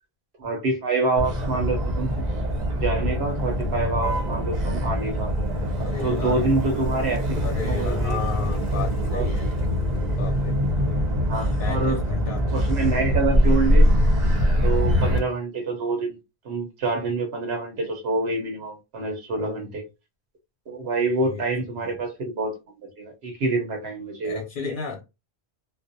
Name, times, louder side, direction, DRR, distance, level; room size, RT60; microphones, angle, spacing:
voice 1, 0.4-2.3 2.7-5.3 6.0-7.4 7.6-8.2 9.1-9.3 11.3-12.0 12.5-13.9 14.6-16.2 16.4-19.8 20.7-22.5 22.8-24.4, right 3 dB, 85° right, 1.1 m, -26 dB
Motor vehicle (road), 1.2-15.2, equal, 45° right, 0.8 m, -23 dB
voice 2, 5.8-6.4 7.4-9.5 10.2-10.6 11.6-12.5 19.4-19.7 21.2-21.4 21.8-21.9 24.2-25.0, left 5 dB, 60° left, 0.8 m, -32 dB
2.4 x 2.0 x 2.6 m
omnidirectional pair, 1.1 m